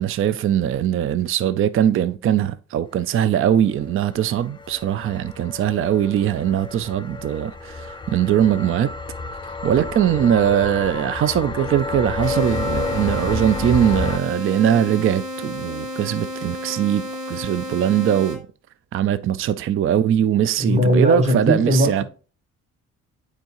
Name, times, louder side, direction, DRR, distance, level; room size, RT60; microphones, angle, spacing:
voice 1, 0.0-8.9 9.6-18.5 18.9-22.0, right 10 dB, 45° right, 0.4 m, -21 dB
sound 1, 3.6-14.2, left 3 dB, 15° left, 0.5 m, -30 dB
sound 2, 12.2-18.4, equal, 90° right, 1.5 m, -32 dB
voice 2, 20.6-22.0, equal, 25° right, 1.7 m, -19 dB
7.9 x 4.8 x 2.9 m
cardioid pair, 90°, 30 cm